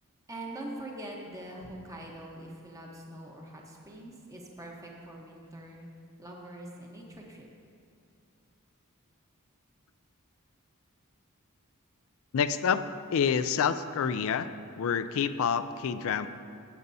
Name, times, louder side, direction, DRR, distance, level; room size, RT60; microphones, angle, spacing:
voice 1, 0.3-5.9 6.2-7.5, right 1 dB, 15° right, -1 dB, 1.0 m, -43 dB
voice 2, 12.3-12.8 13.1-14.5 14.8-16.3, left 7 dB, 65° left, 12 dB, 0.4 m, -27 dB
15.5 x 8.1 x 2.7 m, 2.4 s
head